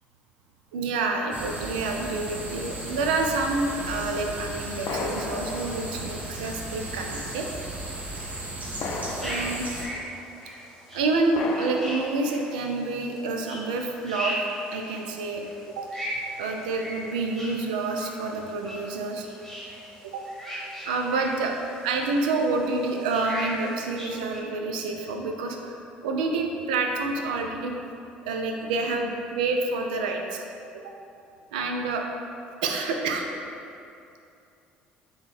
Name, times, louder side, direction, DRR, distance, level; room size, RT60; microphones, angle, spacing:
voice 1, 0.7-7.5 9.1-9.7 10.9-14.3 14.7-15.9 16.4-19.3 20.0-20.2 20.9-21.5 21.8-27.8 28.2-30.4 31.5-32.1 32.6-33.3, right 3 dB, 85° right, 2 dB, 0.4 m, -28 dB
sound 1, 1.3-9.9, right 2 dB, 40° right, 0.9 m, -36 dB
sound 2, 4.8-6.6 7.1-7.2 8.8-10.4 11.3-12.9, left 3 dB, 60° left, 0.5 m, -36 dB
sound 3, 9.2-24.4, equal, 5° left, 1.4 m, -38 dB
3.6 x 3.0 x 4.1 m, 2.7 s
hypercardioid pair, 60°, 4 cm